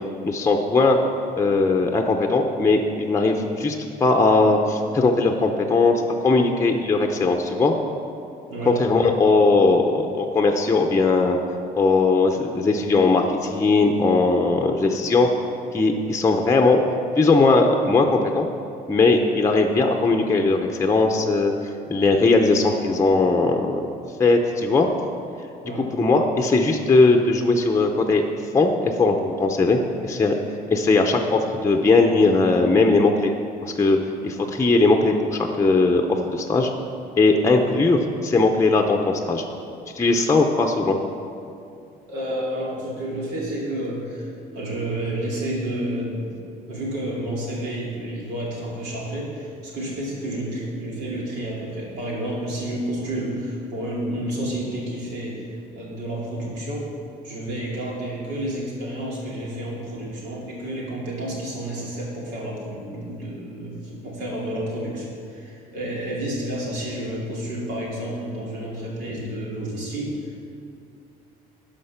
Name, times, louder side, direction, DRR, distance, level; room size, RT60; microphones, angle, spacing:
voice 1, 0.2-1.0 1.4-7.8 8.7-11.4 11.8-15.3 15.7-16.8 17.2-18.5 18.9-21.5 21.9-23.8 24.2-24.9 26.0-28.2 28.5-30.3 30.7-33.3 33.6-34.0 34.2-36.7 37.2-39.4 39.9-41.0, left 3 dB, 15° left, 3 dB, 0.7 m, -19 dB
voice 2, 42.1-46.4 46.7-55.5 55.7-56.9 57.2-70.4, right 1 dB, 85° right, -4 dB, 2.6 m, -30 dB
12.0 x 5.2 x 5.7 m, 2.6 s
cardioid pair, 110°, 17 cm